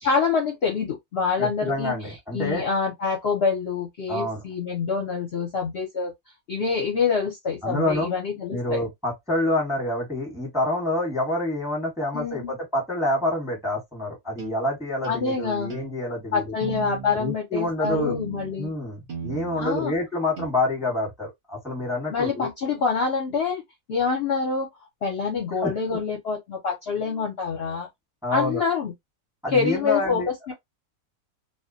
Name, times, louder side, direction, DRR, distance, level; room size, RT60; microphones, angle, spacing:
voice 1, 0.0-6.1 6.5-8.8 12.1-12.5 15.0-15.7 16.3-18.7 19.6-19.9 22.1-23.6 23.9-24.7 25.0-27.9 28.3-28.9 29.5-30.5, left 5 dB, 55° left, 0.7 m, -26 dB
voice 2, 1.4-2.6 4.1-4.4 7.6-8.1 8.5-16.5 17.1-18.2 18.6-22.5 25.6-26.0 28.2-28.6 29.4-30.3, left 1 dB, 5° right, 0.9 m, -27 dB
sound 1, 14.4-14.6 15.0-15.3 15.7-15.9 16.6-17.2 17.8-18.6 19.1-19.9 20.4-20.5, right 5 dB, 50° right, 0.7 m, -35 dB
2.3 x 2.1 x 2.5 m
omnidirectional pair, 1.5 m